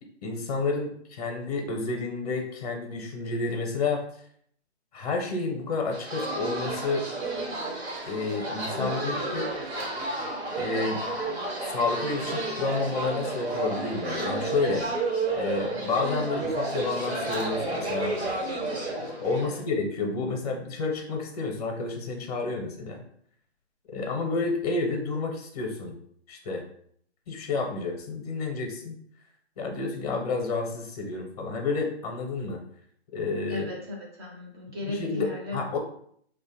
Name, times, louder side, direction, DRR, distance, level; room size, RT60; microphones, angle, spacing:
voice 1, 0.2-4.0 4.9-7.1 8.1-9.5 10.6-11.0 11.7-14.9 15.3-18.1 19.1-23.0 23.9-25.9 26.3-26.6 27.3-29.0 29.6-32.6 33.1-33.7 34.9-35.8, left 3 dB, 35° left, 2 dB, 0.6 m, -30 dB
sound 1, 5.9-19.6, right 2 dB, 70° right, 1.0 m, -31 dB
voice 2, 8.8-9.4 19.4-19.6 33.5-35.8, left 2 dB, 25° right, -1 dB, 0.5 m, -37 dB
2.4 x 2.1 x 2.8 m, 0.64 s
hypercardioid pair, 145°, 34 cm